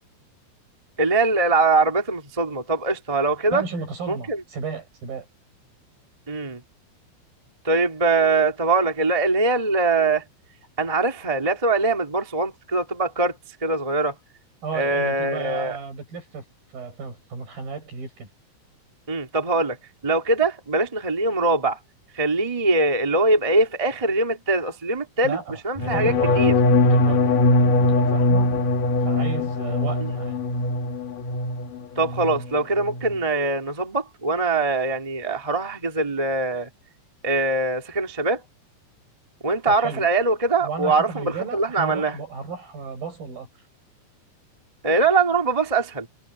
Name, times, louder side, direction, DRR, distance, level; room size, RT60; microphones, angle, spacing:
voice 1, 1.0-3.6 4.1-4.4 6.3-6.6 7.6-10.2 10.8-13.3 13.6-14.1 14.7-15.8 19.1-19.8 20.0-21.8 22.1-25.4 25.6-26.5 30.0-30.1 31.9-36.7 37.2-38.4 39.4-42.2 44.8-46.1, right 3 dB, 15° right, 1.2 m, -22 dB
voice 2, 3.5-5.3 14.6-16.4 16.7-18.3 25.2-26.4 26.7-28.5 29.0-30.4 39.7-40.1 40.6-43.5, right 5 dB, 50° right, 8.9 m, -33 dB
sound 1, 25.8-31.7 32.0-32.5 32.8-33.2, left 2 dB, 55° left, 3.3 m, -21 dB
omnidirectional pair, 5.2 m